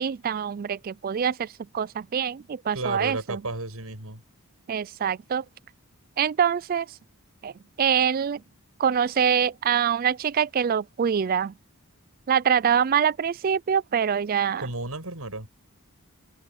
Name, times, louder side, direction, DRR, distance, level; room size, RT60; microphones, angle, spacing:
voice 1, 0.0-3.4 4.7-5.4 6.2-6.9 7.4-7.5 7.8-8.4 8.8-11.5 12.3-14.7, right 7 dB, 40° right, 0.3 m, -24 dB
voice 2, 2.7-4.2 14.6-15.5, right 2 dB, 75° right, 6.8 m, -32 dB
head